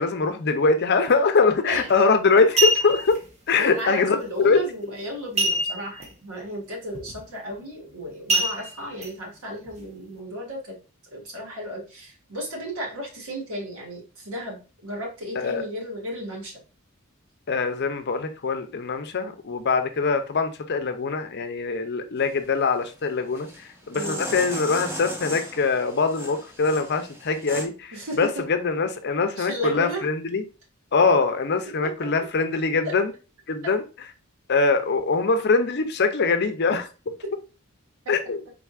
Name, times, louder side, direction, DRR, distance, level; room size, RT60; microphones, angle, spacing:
voice 1, 0.0-3.2 3.5-4.6 15.4-15.6 17.5-30.4 30.9-33.1 33.5-33.8 34.5-36.9 38.1-38.4, left 4 dB, 50° left, 0.6 m, -23 dB
sound 1, 1.7-1.9 2.4-3.2 5.4-6.0 6.4-6.5 6.9-7.2 8.3-9.1 9.7-9.8, right 1 dB, 30° right, 1.1 m, -24 dB
voice 2, 3.6-10.7 11.1-16.6 23.9-24.2 27.9-28.2 29.4-30.0 31.8-32.1 32.8-32.9, equal, 90° right, 1.8 m, -34 dB
sound 2, 22.2-22.6 23.3-27.7, right 1 dB, 10° right, 0.8 m, -36 dB
4.5 x 3.9 x 2.4 m
head